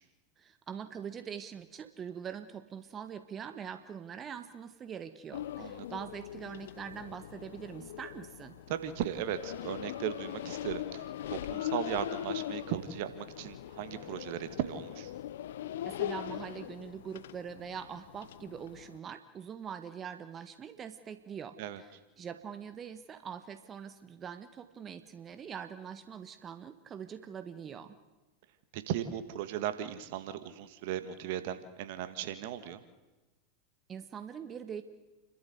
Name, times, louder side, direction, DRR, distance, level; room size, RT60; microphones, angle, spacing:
voice 1, 0.4-8.5 15.8-28.0 33.9-34.8, right 7 dB, 30° right, 10 dB, 1.4 m, -43 dB
sound 1, 5.3-19.0, left 12 dB, 70° left, 0.7 m, -41 dB
voice 2, 8.7-15.1 21.6-21.8 28.7-32.8, right 11 dB, 60° right, 11 dB, 1.8 m, -37 dB
30.0 x 13.0 x 8.1 m, 1.1 s
hypercardioid pair, 90°, 0 cm